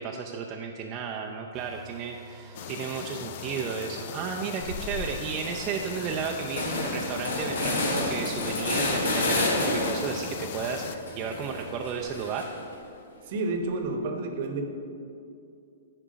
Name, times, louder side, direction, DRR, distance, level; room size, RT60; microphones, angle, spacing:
voice 1, 0.0-12.4, right 6 dB, 35° right, 1 dB, 0.5 m, -33 dB
sound 1, 1.5-11.9, right 5 dB, 10° right, 1.1 m, -49 dB
sound 2, 2.5-11.0, left 9 dB, 55° left, 0.4 m, -38 dB
sound 3, 4.6-5.1 5.5-5.6 5.8-10.2 10.6-12.7, left 2 dB, 75° left, 1.4 m, -30 dB
voice 2, 13.3-14.7, right 2 dB, 55° right, 5 dB, 1.0 m, -30 dB
10.0 x 4.5 x 5.0 m, 2.6 s
hypercardioid pair, 125°, 0 cm